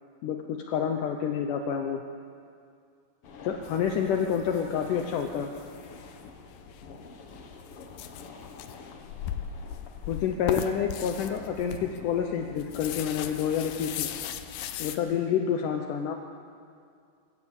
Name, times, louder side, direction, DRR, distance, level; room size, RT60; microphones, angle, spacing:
voice 1, 0.2-2.0 3.4-5.5 10.1-14.1 14.8-16.1, left 8 dB, 70° left, 4 dB, 2.4 m, -28 dB
sound 1, 3.2-15.0, left 3 dB, 50° left, 2.0 m, -48 dB
sound 2, 3.6-15.0, left 10 dB, 90° left, 2.7 m, -39 dB
26.0 x 16.5 x 7.2 m, 2.4 s
omnidirectional pair, 4.1 m